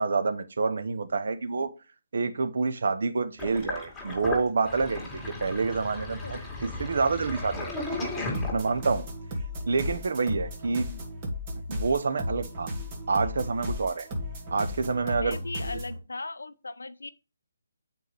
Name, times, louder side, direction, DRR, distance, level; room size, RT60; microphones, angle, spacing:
voice 1, 0.0-1.7 2.1-8.1 8.5-9.1 9.7-10.9 11.7-12.7 13.1-14.1 14.5-15.4, right 4 dB, 60° right, 0.9 m, -28 dB
Sink (filling or washing), 3.4-9.0, left 2 dB, 5° left, 2.2 m, -35 dB
voice 2, 6.2-6.6 10.8-11.1 15.0-17.1, left 3 dB, 80° left, 0.6 m, -38 dB
sound 1, 8.3-16.0, left 1 dB, 30° right, 1.8 m, -35 dB
7.9 x 4.6 x 3.3 m
figure-of-eight pair, 145°, 0 cm